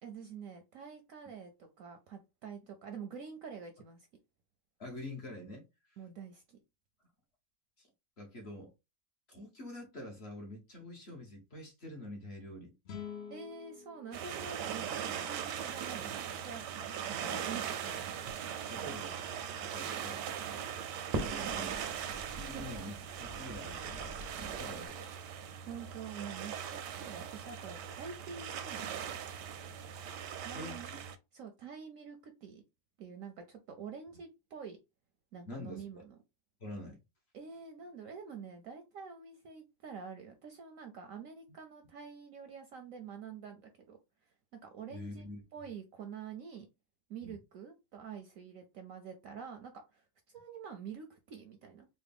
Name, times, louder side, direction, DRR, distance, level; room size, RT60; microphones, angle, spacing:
voice 1, 0.0-1.5 1.8-4.1 6.0-6.6 13.3-16.6 17.1-17.9 21.1-21.9 22.4-22.6 25.7-29.2 30.4-30.9 31.3-32.6 33.0-34.8 35.3-36.1 37.3-44.0 44.5-46.7 47.1-51.9, right 6 dB, 65° right, 0.8 m, -47 dB
voice 2, 4.8-6.0 7.8-7.9 8.2-8.7 9.3-12.7 15.1-15.2 18.7-19.2 19.6-20.2 21.2-21.7 22.3-22.9 23.2-25.1 30.5-30.8 35.5-36.0 36.6-37.0 44.9-45.4 47.2-47.4, left 1 dB, 45° left, 1.1 m, -46 dB
sound 1, 12.8-16.2, left 7 dB, 70° left, 0.6 m, -49 dB
sound 2, 14.1-31.2, right 8 dB, 85° right, 1.2 m, -40 dB
Crackle, 17.1-24.9, right 1 dB, 50° right, 0.4 m, -46 dB
4.1 x 2.1 x 3.4 m
omnidirectional pair, 1.8 m